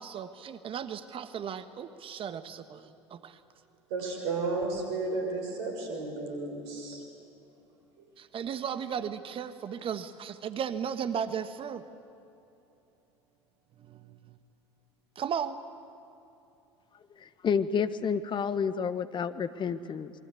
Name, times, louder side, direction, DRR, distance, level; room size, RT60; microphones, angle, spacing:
voice 1, 0.0-3.4 8.2-11.8 13.8-14.2 15.1-15.6, right 8 dB, 40° right, 11 dB, 1.3 m, -35 dB
voice 2, 3.9-7.0, right 3 dB, 65° right, 3 dB, 6.7 m, -33 dB
voice 3, 17.2-20.1, left 6 dB, 30° left, 12 dB, 1.3 m, -30 dB
27.5 x 22.5 x 8.4 m, 2.8 s
figure-of-eight pair, 70°, 15 cm